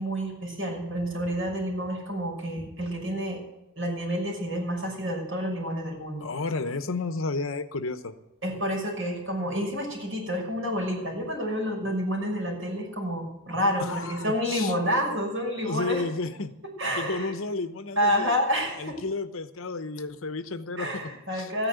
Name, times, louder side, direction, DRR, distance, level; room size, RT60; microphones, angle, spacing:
voice 1, 0.0-3.4 3.8-6.3 8.4-16.0 16.6-17.3 18.0-19.0 20.8-21.7, equal, 65° right, -1 dB, 6.0 m, -29 dB
voice 2, 6.2-8.1 13.8-14.7 15.6-16.5 17.0-18.4 18.8-21.5, left 3 dB, 70° left, 10 dB, 0.9 m, -32 dB
14.0 x 10.0 x 8.0 m, 0.94 s
head